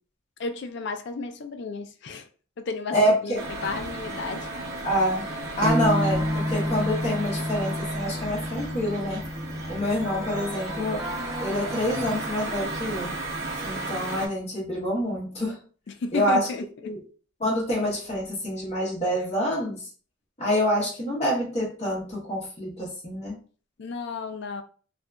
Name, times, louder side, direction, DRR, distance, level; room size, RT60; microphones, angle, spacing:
voice 1, 0.4-2.3 2.6-4.5 15.9-16.9 23.8-24.6, left 4 dB, 55° left, 0.4 m, -33 dB
voice 2, 2.9-3.4 4.8-5.3 5.6-9.2 9.7-11.0 11.4-13.1 13.6-15.6 16.1-16.5 16.8-17.0 17.4-19.9 20.4-23.4, equal, 30° left, 0.9 m, -26 dB
sound 1, 3.3-14.3, right 2 dB, 80° right, 0.7 m, -34 dB
sound 2, 5.6-13.1, left 1 dB, 45° right, 1.2 m, -31 dB
sound 3, 6.0-12.6, equal, 15° right, 0.4 m, -41 dB
2.7 x 2.4 x 2.2 m
head